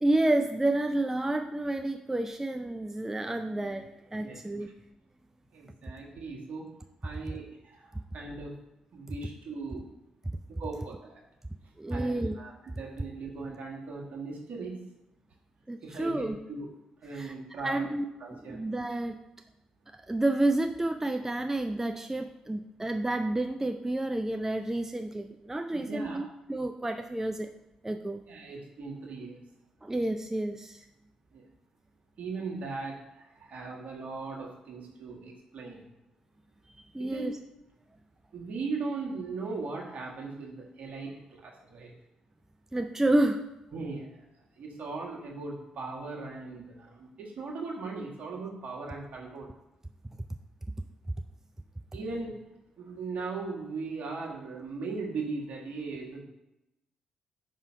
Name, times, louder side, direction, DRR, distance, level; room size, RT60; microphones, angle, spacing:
voice 1, 0.0-4.7 11.8-12.3 15.7-16.4 17.1-17.3 17.6-19.2 20.1-27.5 27.8-28.2 29.8-30.9 36.9-37.4 42.7-43.4, right 1 dB, 15° right, 6 dB, 0.4 m, -30 dB
voice 2, 5.5-6.6 7.0-8.5 8.9-9.8 10.6-11.2 11.9-14.8 15.8-16.7 17.0-17.9 18.2-18.6 25.9-26.2 28.3-29.4 31.3-31.4 32.2-35.8 37.0-37.4 38.3-41.9 43.7-44.3 44.6-49.5 51.9-52.4 52.8-56.2, right 3 dB, 55° right, -2 dB, 1.5 m, -38 dB
5.4 x 3.7 x 5.9 m, 0.94 s
hypercardioid pair, 45°, 3 cm